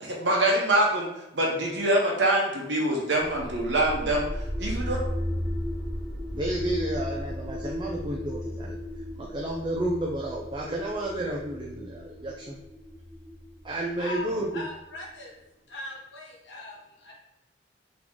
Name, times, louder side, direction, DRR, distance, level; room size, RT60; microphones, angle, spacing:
voice 1, 0.1-4.3 4.6-5.0, right 1 dB, 80° right, -2 dB, 1.1 m, -24 dB
sound 1, 3.2-15.0, left 1 dB, ahead, 1.3 m, -35 dB
voice 2, 6.3-8.8 9.2-12.6 13.6-14.6, right 1 dB, 25° right, -1 dB, 0.4 m, -31 dB
voice 3, 14.5-15.3 15.7-17.1, left 2 dB, 90° left, -4 dB, 1.2 m, -39 dB
3.9 x 3.0 x 3.7 m, 0.92 s
head